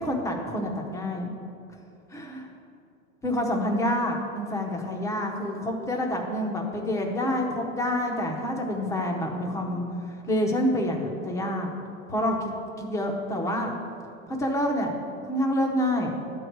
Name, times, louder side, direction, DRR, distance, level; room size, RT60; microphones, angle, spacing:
voice 1, 0.0-1.3 2.1-2.5 3.2-11.7 12.1-12.5 12.8-13.7 14.3-14.9 15.3-16.1, left 1 dB, 5° left, 1 dB, 0.8 m, -27 dB
11.0 x 4.7 x 8.0 m, 2.6 s
supercardioid pair, 150°, 41 cm